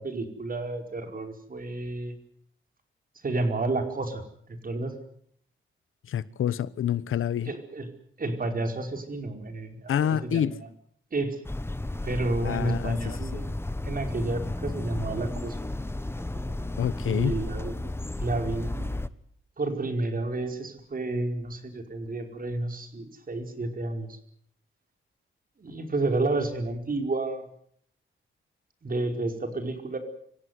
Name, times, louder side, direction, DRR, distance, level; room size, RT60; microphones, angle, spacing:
voice 1, 0.0-2.1 3.2-4.2 4.5-4.9 7.4-7.9 8.2-10.7 11.1-11.4 12.0-13.5 13.8-15.6 16.2-17.9 18.2-18.9 19.6-24.2 25.6-27.5 28.8-30.0, right 2 dB, 45° right, 5.1 m, -31 dB
voice 2, 6.1-7.5 9.9-10.6 12.4-13.0 16.8-17.4, left 9 dB, 80° left, 1.0 m, -27 dB
sound 1, 11.4-19.1, left 2 dB, 10° left, 1.2 m, -33 dB
25.5 x 17.0 x 9.7 m
cardioid pair, 85°, 21 cm